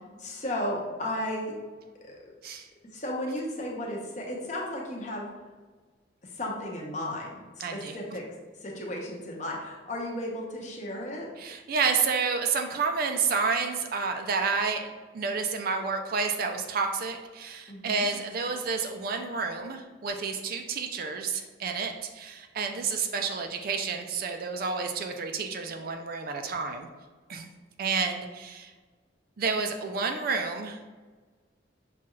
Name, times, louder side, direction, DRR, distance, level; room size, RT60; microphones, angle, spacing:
voice 1, 0.2-1.5 2.0-2.3 2.9-5.3 6.2-8.2 8.6-11.3 17.7-18.1, left 1 dB, 40° left, -2 dB, 0.8 m, -34 dB
voice 2, 7.6-8.0 11.4-26.9 27.3-27.5 27.8-28.7 29.4-30.8, right 5 dB, 50° right, 5 dB, 0.4 m, -30 dB
5.9 x 2.3 x 3.0 m, 1.4 s
head